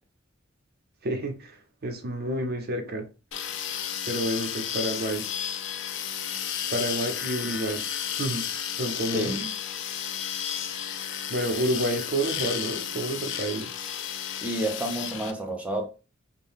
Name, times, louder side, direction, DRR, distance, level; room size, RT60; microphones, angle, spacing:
voice 1, 1.0-1.5 1.8-3.1 4.0-5.3 6.7-7.8 8.2-8.5 8.8-9.5 11.3-13.7, right 1 dB, 50° right, 0.6 m, -29 dB
sound 1, 3.3-15.3, left 9 dB, 65° left, 0.3 m, -33 dB
voice 2, 14.4-15.9, right 1 dB, 5° right, 0.6 m, -29 dB
2.6 x 2.1 x 3.5 m
head